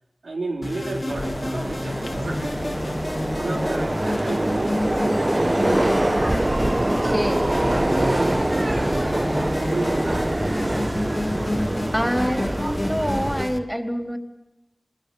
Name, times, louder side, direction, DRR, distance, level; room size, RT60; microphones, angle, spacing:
voice 1, 0.2-3.0 3.4-6.2 7.9-9.3 9.6-10.3, right 2 dB, 90° right, 2 dB, 3.6 m, -31 dB
sound 1, 0.6-13.6, left 1 dB, 40° left, 2.2 m, -30 dB
Subway metro underground, 1.1-13.4, right 1 dB, 30° right, 1.0 m, -24 dB
sound 2, 1.2-13.4, left 3 dB, 75° left, 1.7 m, -41 dB
voice 2, 6.8-7.5 11.9-14.2, equal, ahead, 5 dB, 3.9 m, -26 dB
27.5 x 20.0 x 7.3 m, 0.94 s
wide cardioid pair, 45°, 0 cm